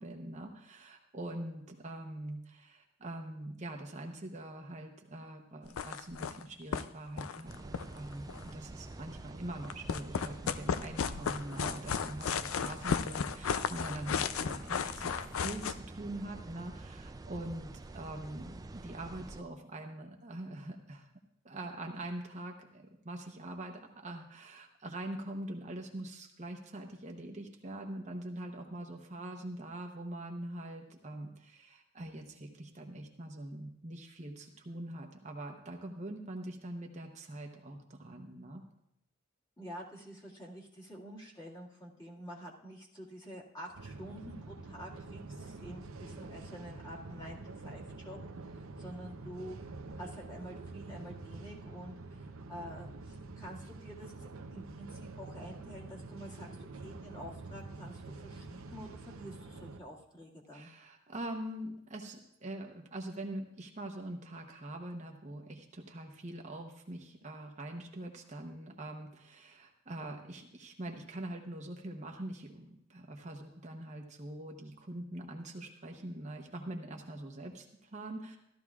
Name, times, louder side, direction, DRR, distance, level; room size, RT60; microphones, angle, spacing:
voice 1, 0.0-21.1 21.4-38.6 60.5-78.4, right 1 dB, 35° right, 2 dB, 0.9 m, -43 dB
sound 1, 5.7-6.4 6.7-6.8 7.1-8.5 9.6-15.7, left 6 dB, 85° left, 0.4 m, -34 dB
sound 2, 7.5-19.4, right 2 dB, 20° right, 0.3 m, -47 dB
voice 2, 39.6-49.6 50.0-60.7, equal, 20° left, -4 dB, 1.8 m, -48 dB
sound 3, 43.7-59.8, right 3 dB, 90° right, 0.7 m, -47 dB
14.5 x 12.5 x 2.4 m, 0.78 s
head